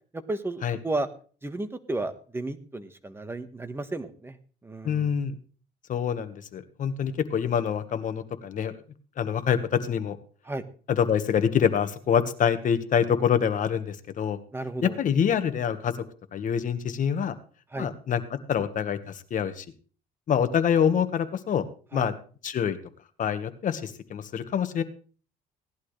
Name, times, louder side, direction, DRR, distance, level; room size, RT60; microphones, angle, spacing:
voice 1, 0.1-1.1 1.4-4.4 4.6-5.1 10.4-10.6 14.5-15.0 17.7-17.9 21.9-22.1, right 2 dB, 15° right, 9 dB, 1.4 m, -33 dB
voice 2, 4.8-5.3 5.9-8.7 9.2-10.2 10.9-14.4 14.8-15.9 16.3-17.3 17.8-19.6 20.3-21.6 21.9-22.1 22.4-22.8 23.2-24.8, left 8 dB, 50° left, 10 dB, 1.4 m, -26 dB
17.5 x 11.0 x 3.3 m, 0.41 s
cardioid pair, 110°, 17 cm